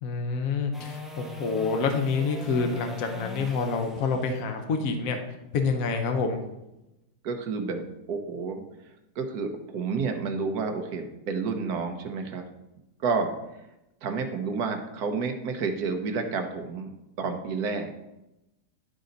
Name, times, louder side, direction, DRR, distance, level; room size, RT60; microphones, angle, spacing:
voice 1, 0.0-5.2 5.5-6.4, left 4 dB, 65° left, 5 dB, 1.2 m, -27 dB
sound 1, 0.7-6.9 13.4-13.5, left 1 dB, ahead, 0.4 m, -42 dB
voice 2, 7.2-7.8 8.1-8.6 9.2-12.5 13.0-13.3 14.0-16.9 17.2-17.9, right 4 dB, 70° right, 5 dB, 1.4 m, -30 dB
11.5 x 4.1 x 3.9 m, 0.93 s
omnidirectional pair, 1.7 m